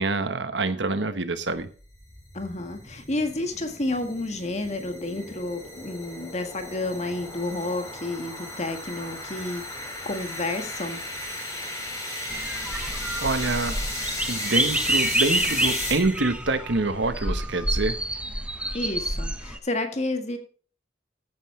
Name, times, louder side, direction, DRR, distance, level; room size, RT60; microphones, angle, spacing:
voice 1, 0.0-1.7 13.2-13.8 14.3-18.0, right 3 dB, 70° right, 11 dB, 1.2 m, -26 dB
sound 1, 1.6-16.4, left 1 dB, 15° left, 4.3 m, -35 dB
voice 2, 2.3-9.7 10.1-11.0 18.7-20.4, left 2 dB, 35° left, 7 dB, 1.7 m, -30 dB
sound 2, 12.3-19.6, right 1 dB, 5° right, 1.1 m, -28 dB
14.5 x 9.5 x 3.3 m, 0.41 s
head